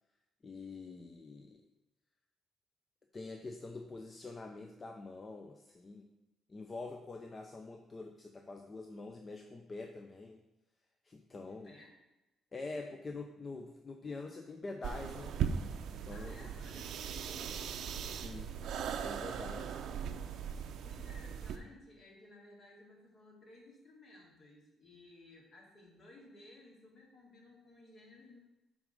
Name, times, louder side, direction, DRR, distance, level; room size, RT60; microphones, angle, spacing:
voice 1, 0.4-1.6 3.1-6.0 6.5-10.4 11.0-11.7 12.5-15.3 15.9-16.3 18.1-18.5 19.0-19.8, left 3 dB, 30° left, 4 dB, 0.6 m, -45 dB
voice 2, 11.4-12.0 16.1-17.6 20.8-28.4, left 2 dB, 55° left, -2 dB, 2.3 m, -57 dB
sound 1, 14.8-21.6, right 7 dB, 75° right, 0.5 m, -39 dB
8.0 x 3.8 x 5.2 m, 0.99 s
cardioid pair, 90°, 0 cm